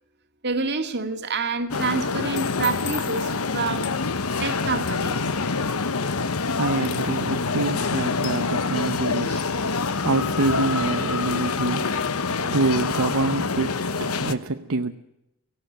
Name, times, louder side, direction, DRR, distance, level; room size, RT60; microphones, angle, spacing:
voice 1, 0.4-3.9 4.4-5.3, right 4 dB, 50° right, 2.0 m, -27 dB
sound 1, 1.7-14.3, left 4 dB, 75° left, 1.1 m, -26 dB
voice 2, 6.2-14.9, right 2 dB, 70° right, 0.8 m, -27 dB
18.5 x 16.0 x 9.0 m
head